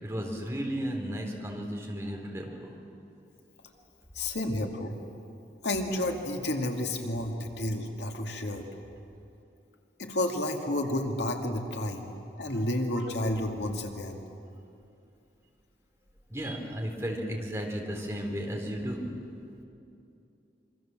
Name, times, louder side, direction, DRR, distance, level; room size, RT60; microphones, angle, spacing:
voice 1, 0.0-2.7 12.5-12.6 16.3-19.1, equal, 15° right, 0 dB, 3.6 m, -34 dB
voice 2, 4.1-5.0 5.6-8.7 10.0-12.1 12.4-14.2, left 1 dB, 85° left, 2 dB, 2.5 m, -31 dB
26.5 x 25.0 x 7.6 m, 2.7 s
head